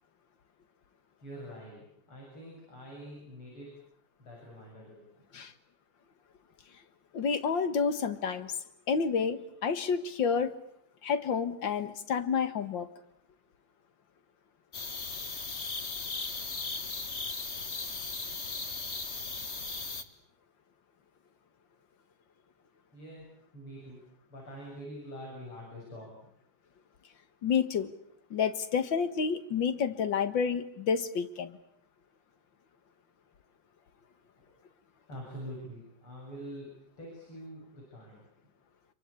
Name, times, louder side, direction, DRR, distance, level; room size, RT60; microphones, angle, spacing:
voice 1, 1.2-3.8 4.2-5.1 22.9-23.2 23.5-24.0 24.3-26.1 34.3-34.6 35.1-38.2, equal, 85° left, -2 dB, 8.5 m, -45 dB
voice 2, 7.1-8.6 8.9-10.5 11.0-12.9 27.4-27.9 28.3-31.6, left 6 dB, 60° left, 11 dB, 2.2 m, -29 dB
sound 1, 14.7-20.0, left 4 dB, 35° left, 1.9 m, -37 dB
28.0 x 23.5 x 8.5 m, 0.72 s
omnidirectional pair, 2.3 m